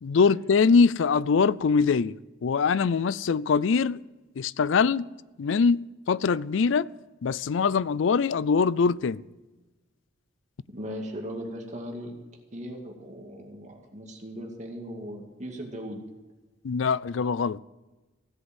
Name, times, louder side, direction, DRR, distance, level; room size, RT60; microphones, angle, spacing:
voice 1, 0.0-2.2 2.4-4.0 4.4-5.1 5.4-5.8 6.1-6.9 7.2-9.2 16.6-17.6, left 5 dB, 75° left, 0.4 m, -23 dB
voice 2, 10.7-12.2 12.5-16.0, equal, 35° right, 2.2 m, -38 dB
16.5 x 8.0 x 7.8 m
head